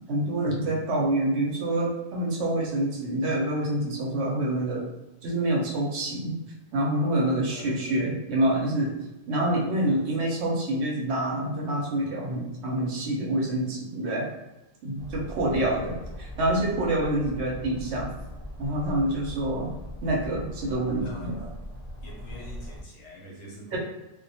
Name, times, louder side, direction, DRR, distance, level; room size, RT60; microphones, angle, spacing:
voice 1, 0.1-4.9 5.2-6.3 6.7-9.0 9.3-14.3 14.8-18.1 18.6-19.7 20.0-21.3 23.7-23.8, right 1 dB, 65° right, -2 dB, 0.8 m, -27 dB
voice 2, 7.6-8.1 9.8-10.1 15.1-15.5 21.0-21.3 22.0-23.8, left 1 dB, 70° left, -3 dB, 0.8 m, -45 dB
sound 1, 15.0-22.8, left 1 dB, 45° left, 0.4 m, -40 dB
2.2 x 2.1 x 2.6 m, 0.98 s
omnidirectional pair, 1.3 m